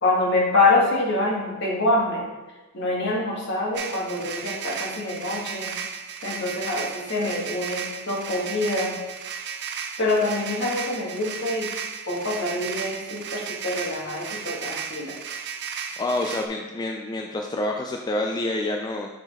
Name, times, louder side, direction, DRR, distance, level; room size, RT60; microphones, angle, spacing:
voice 1, 0.0-2.2 2.7-5.8 6.2-9.0 10.0-11.7 12.1-15.1, left 2 dB, 55° left, -3 dB, 1.5 m, -25 dB
sound 1, 3.7-16.5, right 7 dB, 55° right, 0.5 m, -34 dB
voice 2, 16.0-19.1, left 2 dB, 20° left, 2 dB, 0.3 m, -27 dB
5.9 x 4.6 x 4.2 m, 1.2 s
head